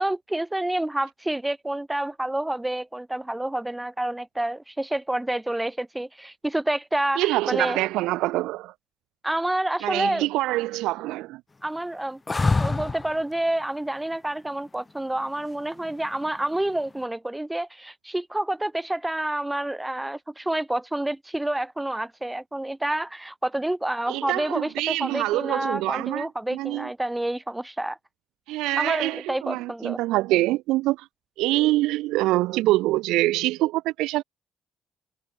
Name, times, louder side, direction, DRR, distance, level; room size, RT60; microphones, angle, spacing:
voice 1, 0.0-7.8 9.2-10.3 11.6-12.2 12.6-28.0 28.8-30.0, right 1 dB, 10° right, 4.6 m, -28 dB
voice 2, 7.2-8.7 9.8-11.4 24.1-26.9 28.5-31.1 31.4-34.2, right 18 dB, 90° right, 1.4 m, -25 dB
sound 1, 12.3-13.2 15.8-16.4, left 3 dB, 25° left, 2.3 m, -24 dB
supercardioid pair, 75°, 0 cm